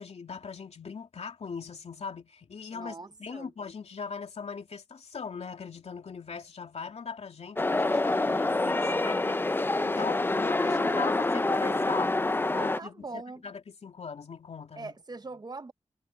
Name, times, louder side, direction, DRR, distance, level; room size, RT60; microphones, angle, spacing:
voice 1, 0.0-12.1 12.6-14.9, left 5 dB, 60° left, 2.7 m, -40 dB
voice 2, 2.7-3.5 8.1-8.5 8.8-9.1 10.6-11.9 12.5-13.4 14.8-15.7, right 3 dB, 35° right, 1.0 m, -42 dB
sound 1, 7.6-12.8, left 2 dB, 20° left, 0.6 m, -27 dB
wide cardioid pair, 90°, 12 cm